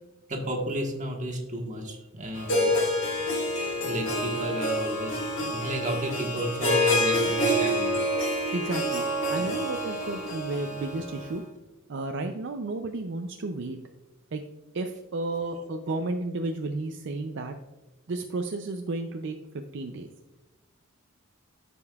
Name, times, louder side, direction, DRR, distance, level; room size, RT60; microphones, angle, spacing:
voice 1, 0.3-2.8 3.3-3.4 3.8-7.9 9.3-9.4 15.5-15.7, equal, 35° right, 2 dB, 1.3 m, -33 dB
Harp, 2.3-11.4, equal, 65° left, 1.9 m, -27 dB
voice 2, 8.5-9.0 9.3-11.4 11.9-13.8 14.3-14.4 14.7-17.6 18.1-19.4 19.7-20.1, right 2 dB, 60° right, 5 dB, 0.5 m, -32 dB
14.0 x 5.3 x 2.3 m, 1.1 s
head